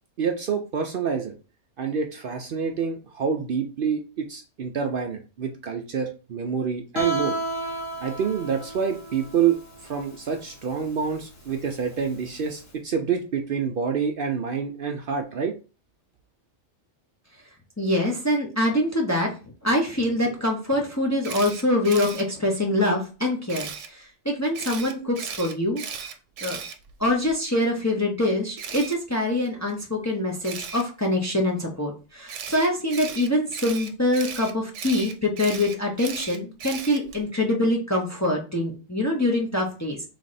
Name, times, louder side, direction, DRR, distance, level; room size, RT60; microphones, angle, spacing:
voice 1, 0.2-1.3 1.8-7.3 8.0-9.6 9.8-15.5, right 6 dB, 60° right, 4 dB, 0.7 m, -27 dB
Guitar, 6.9-12.6, right 2 dB, 60° left, 1.5 m, -33 dB
voice 2, 17.8-19.3 19.6-25.8 26.4-26.6 27.0-40.0, left 1 dB, 20° left, 0 dB, 0.6 m, -24 dB
Camera, 21.2-22.2 23.5-23.9 24.5-27.3 28.6-28.9 30.4-30.8 32.3-37.2, right 7 dB, 85° right, 1.0 m, -36 dB
3.3 x 3.1 x 3.9 m, 0.34 s
omnidirectional pair, 1.2 m